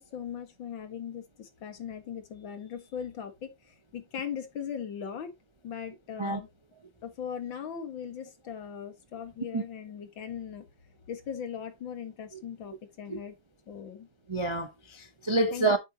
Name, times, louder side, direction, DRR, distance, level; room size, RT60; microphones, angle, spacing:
voice 1, 0.0-5.3 5.6-6.5 7.0-10.7 11.1-13.3 13.7-14.1 15.5-15.8, left 8 dB, 80° left, 2.4 m, -39 dB
voice 2, 14.3-15.8, right 2 dB, 35° right, 0.4 m, -28 dB
8.9 x 8.2 x 2.9 m
omnidirectional pair, 2.0 m